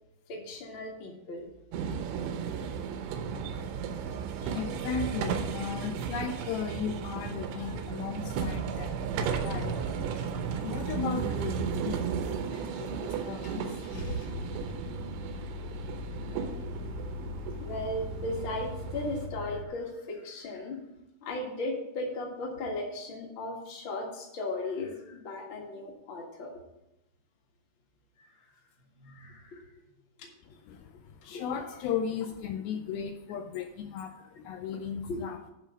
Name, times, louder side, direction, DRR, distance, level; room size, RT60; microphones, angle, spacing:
voice 1, 0.3-1.5 13.3-13.4 17.5-20.8 21.2-26.5 28.2-28.5 29.0-29.7 30.2-30.3 31.3-31.4 35.0-35.5, left 2 dB, 50° left, -1 dB, 1.5 m, -37 dB
sound 1, 1.7-19.3, right 6 dB, 90° right, 3.1 m, -35 dB
voice 2, 3.9-13.9 14.3-14.4 30.7-35.4, left 6 dB, 85° left, 6 dB, 2.1 m, -36 dB
Car / Engine starting, 12.7-12.8 13.4-19.6, left 2 dB, 70° left, 1.6 m, -40 dB
11.5 x 3.8 x 7.4 m, 0.90 s
omnidirectional pair, 4.9 m